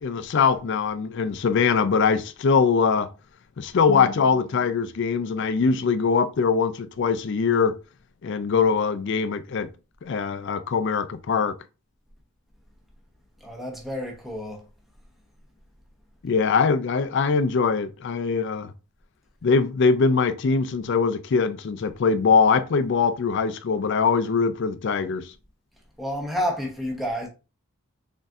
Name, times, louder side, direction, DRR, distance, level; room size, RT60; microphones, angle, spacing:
voice 1, 0.0-3.1 3.6-7.8 8.2-9.7 10.0-11.6 16.2-18.7 19.4-25.3, left 5 dB, 55° left, 0.4 m, -22 dB
voice 2, 13.4-14.6 26.0-27.3, equal, ahead, 0.9 m, -29 dB
4.1 x 3.5 x 2.5 m
head